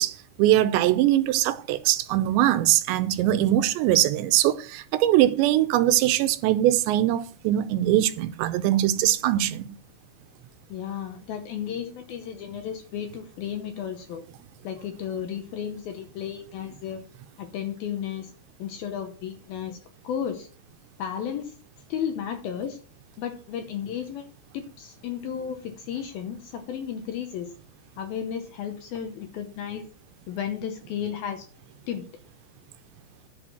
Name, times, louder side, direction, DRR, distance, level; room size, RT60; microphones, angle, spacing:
voice 1, 0.0-9.7, right 13 dB, 80° right, 2.9 m, -22 dB
voice 2, 10.7-14.2 14.6-17.0 17.4-18.3 18.6-19.8 20.0-20.5 21.0-21.6 21.9-22.8 23.2-24.3 24.5-27.6 28.0-29.9 30.3-31.5 31.9-32.1, left 8 dB, 75° left, 2.3 m, -33 dB
11.0 x 6.3 x 5.9 m
omnidirectional pair, 5.2 m